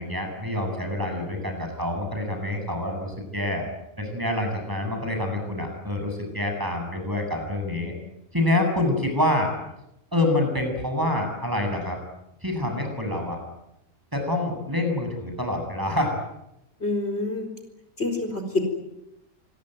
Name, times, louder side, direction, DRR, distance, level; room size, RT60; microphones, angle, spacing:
voice 1, 0.0-3.6 4.0-7.9 8.3-9.5 10.1-12.0 12.4-13.4 14.1-16.2, left 1 dB, 15° right, 3 dB, 7.9 m, -26 dB
voice 2, 16.8-17.5 18.0-18.7, left 2 dB, 50° left, 4 dB, 4.4 m, -26 dB
26.5 x 22.0 x 9.4 m, 0.88 s
omnidirectional pair, 1.4 m